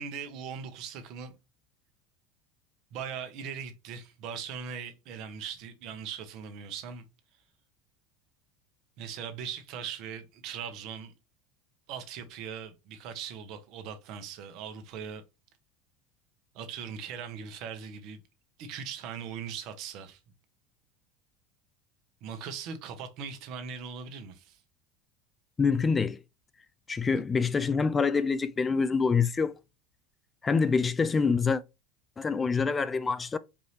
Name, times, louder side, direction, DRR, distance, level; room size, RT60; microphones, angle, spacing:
voice 1, 0.0-1.3 2.9-7.0 9.0-11.1 11.9-15.2 16.5-18.2 18.6-20.2 22.2-24.6, right 7 dB, 60° right, 1.0 m, -40 dB
voice 2, 25.6-26.2 26.9-29.6 30.4-31.6 32.2-33.4, left 5 dB, 20° left, 0.3 m, -26 dB
4.6 x 2.7 x 3.1 m
supercardioid pair, 115°, 0 cm